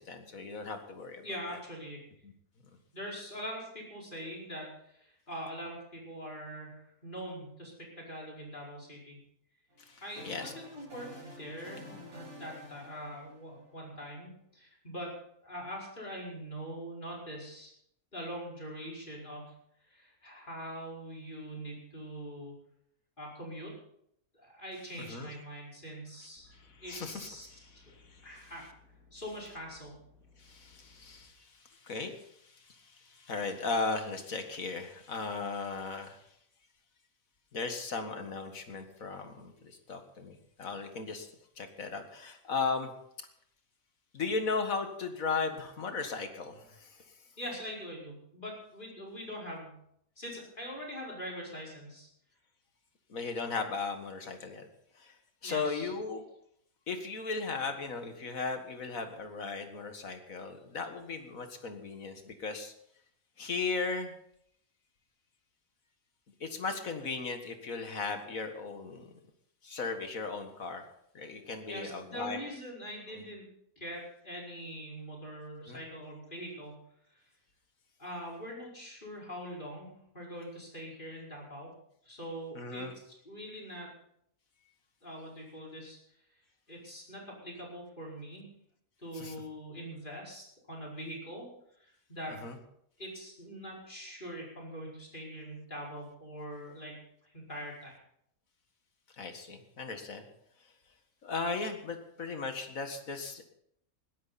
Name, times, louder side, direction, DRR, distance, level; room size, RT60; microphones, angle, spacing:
voice 1, 0.0-1.2 1.5-1.6 2.2-2.3 9.8-10.5 25.0-25.3 26.5-27.5 28.1-28.5 30.4-36.2 37.5-41.3 41.6-42.9 44.1-47.0 53.1-54.7 55.0-55.2 55.4-56.2 56.9-62.7 63.4-64.1 66.4-69.1 69.6-70.8 71.1-72.4 73.1-73.2 75.7-75.8 82.6-82.9 89.1-89.4 92.4-92.6 99.2-100.2 101.2-103.4, left 4 dB, 65° left, 6 dB, 2.1 m, -37 dB
voice 2, 1.2-2.0 2.9-9.2 10.0-15.1 15.4-17.7 18.1-19.5 19.8-22.5 23.2-23.7 24.3-26.5 26.8-27.9 28.2-28.7 29.1-30.0 47.4-49.8 50.2-52.1 55.4-55.9 71.7-73.4 73.8-76.8 78.0-81.7 82.0-83.9 85.0-86.0 86.7-88.5 89.0-91.5 91.8-92.4 93.0-98.0, equal, 35° left, -3 dB, 5.2 m, -43 dB
sound 1, 9.7-13.9, left 1 dB, 70° right, 5.4 m, -50 dB
sound 2, 26.4-31.2, left 3 dB, 85° right, 4.5 m, -62 dB
21.0 x 12.5 x 4.2 m, 0.71 s
omnidirectional pair, 1.5 m